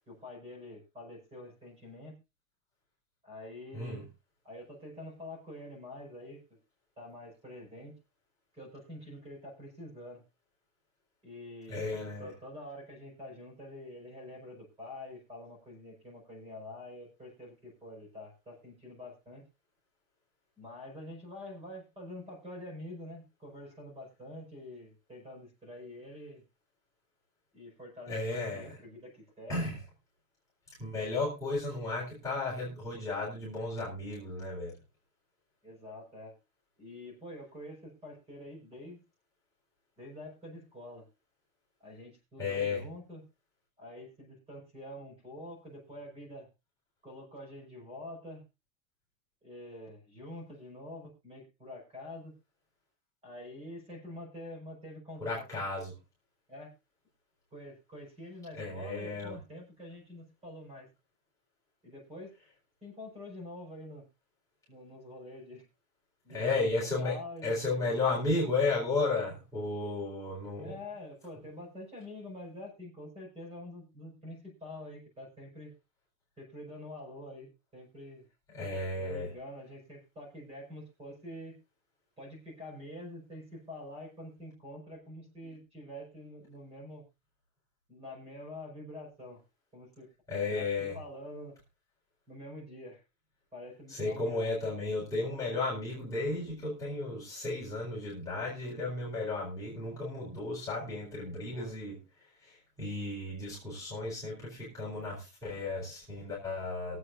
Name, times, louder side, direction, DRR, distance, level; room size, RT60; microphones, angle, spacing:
voice 1, 0.1-2.2 3.2-4.1 4.4-6.6 7.0-7.9 8.5-10.2 11.2-19.4 20.6-26.4 27.5-29.7 35.6-36.4 36.8-39.0 40.0-41.1 41.8-43.2 43.8-46.5 47.0-48.4 49.4-52.4 53.2-55.4 56.5-56.7 57.5-60.9 61.8-62.3 62.8-64.0 64.7-65.6 66.2-67.6 70.6-75.7 76.4-78.3 79.0-81.6 82.2-87.0 87.9-89.4 89.7-90.1 90.5-91.5 92.3-93.0 93.5-94.5 101.5-101.7, left 1 dB, 15° right, 5.3 m, -46 dB
voice 2, 3.7-4.0 11.7-12.3 28.1-28.8 29.5-29.8 30.8-34.7 42.4-42.8 55.2-55.9 58.5-59.4 66.3-70.8 78.5-79.3 90.3-91.0 93.9-101.9 102.4-107.0, left 3 dB, 10° left, 4.2 m, -34 dB
23.5 x 8.1 x 2.5 m
supercardioid pair, 170°, 41 cm